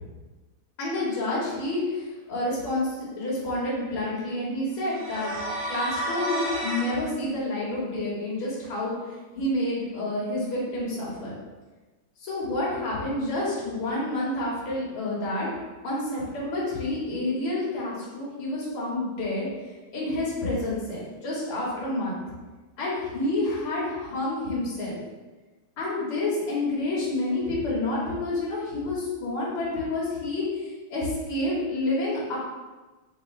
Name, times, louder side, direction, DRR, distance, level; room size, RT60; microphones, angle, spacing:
voice 1, 0.8-5.3 5.7-11.4 12.2-15.5 15.8-22.2 22.8-25.0 25.8-32.4, left 2 dB, 80° left, -6 dB, 2.2 m, -29 dB
sound 1, 4.8-7.0, right 1 dB, 45° right, 1.7 m, -31 dB
4.4 x 3.0 x 3.8 m, 1.2 s
omnidirectional pair, 2.4 m